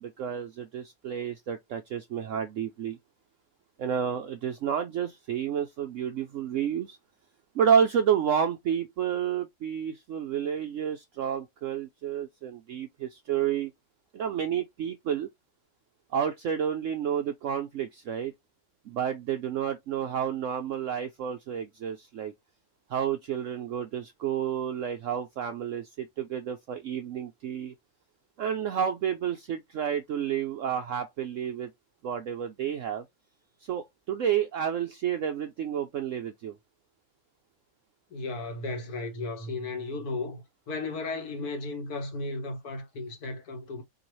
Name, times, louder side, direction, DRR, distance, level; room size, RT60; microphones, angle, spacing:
voice 1, 0.0-3.0 3.8-7.0 7.6-13.7 14.1-15.3 16.1-18.3 18.9-22.3 22.9-27.7 28.4-31.7 32.0-33.0 33.7-36.5, right 8 dB, 75° right, 0.7 m, -30 dB
voice 2, 38.1-43.8, left 3 dB, 65° left, 1.8 m, -35 dB
4.6 x 2.8 x 3.0 m
omnidirectional pair, 1.8 m